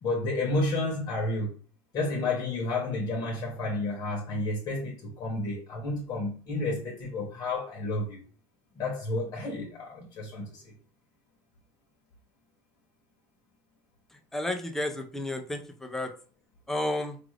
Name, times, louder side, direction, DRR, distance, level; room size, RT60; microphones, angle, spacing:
voice 1, 0.0-1.5 1.9-8.2 8.7-10.7, left 2 dB, 30° left, 0.9 m, -31 dB
voice 2, 14.3-16.1 16.7-17.2, left 1 dB, 5° left, 0.4 m, -31 dB
4.8 x 2.5 x 3.1 m
cardioid pair, 175°, 11 cm